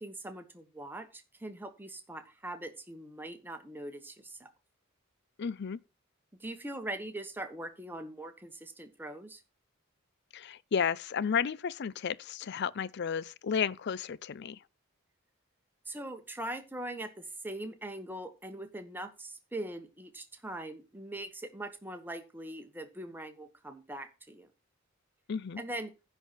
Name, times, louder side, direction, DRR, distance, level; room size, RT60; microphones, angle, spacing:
voice 1, 0.0-4.5 6.4-9.4 15.9-24.5 25.6-25.9, right 1 dB, 10° right, 1.3 m, -41 dB
voice 2, 5.4-5.8 10.3-14.6 25.3-25.6, left 7 dB, 55° left, 0.4 m, -32 dB
10.5 x 4.5 x 7.3 m
head